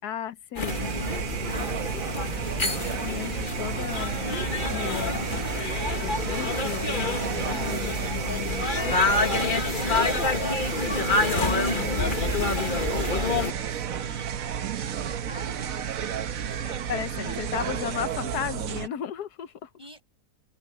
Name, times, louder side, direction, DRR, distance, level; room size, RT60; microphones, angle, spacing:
voice 1, 0.0-0.9 1.5-1.7 3.0-4.4 4.7-5.2 5.8-9.0 11.3-12.2 16.9-19.7, left 10 dB, 80° left, 1.5 m, -35 dB
sound 1, 0.6-13.5, left 3 dB, 35° left, 1.6 m, -27 dB
sound 2, 0.7-18.9, right 8 dB, 65° right, 1.3 m, -32 dB
voice 2, 1.5-2.1 5.2-5.5 6.2-6.5 8.5-10.9 11.3-14.4 14.9-17.8 19.8-20.0, right 1 dB, 20° right, 6.6 m, -46 dB
omnidirectional pair, 1.7 m